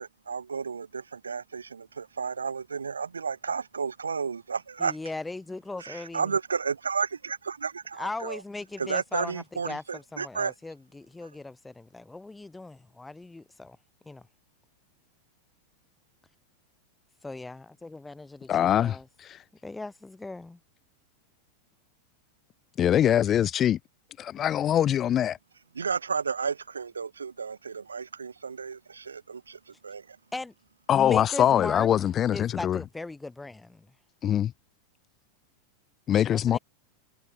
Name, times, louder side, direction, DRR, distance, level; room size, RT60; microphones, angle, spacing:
voice 1, 0.0-5.0 5.8-8.4 8.8-10.5 25.7-30.2, right 5 dB, 75° right, 0.3 m, -32 dB
voice 2, 4.8-6.3 8.0-13.8 14.0-14.3 17.2-19.1 19.6-20.6 30.3-30.5 30.9-31.9 32.3-33.9 36.3-36.6, left 2 dB, 10° left, 3.2 m, -38 dB
voice 3, 18.5-19.0 22.8-23.8 24.2-25.4 30.9-32.8 34.2-34.5 36.1-36.6, left 10 dB, 30° left, 0.4 m, -23 dB
figure-of-eight pair, 90°, 0 cm